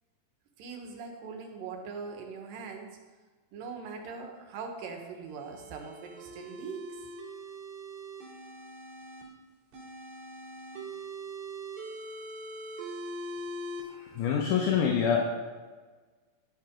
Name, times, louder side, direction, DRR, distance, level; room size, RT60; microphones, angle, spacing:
voice 1, 0.6-2.9 3.5-6.9, right 5 dB, 85° right, 3 dB, 2.8 m, -41 dB
sound 1, 5.3-9.2 9.7-13.8, right 1 dB, 65° right, 3.3 m, -42 dB
voice 2, 14.0-15.2, left 7 dB, 75° left, 0 dB, 2.3 m, -26 dB
11.0 x 5.7 x 5.0 m, 1.4 s
omnidirectional pair, 3.8 m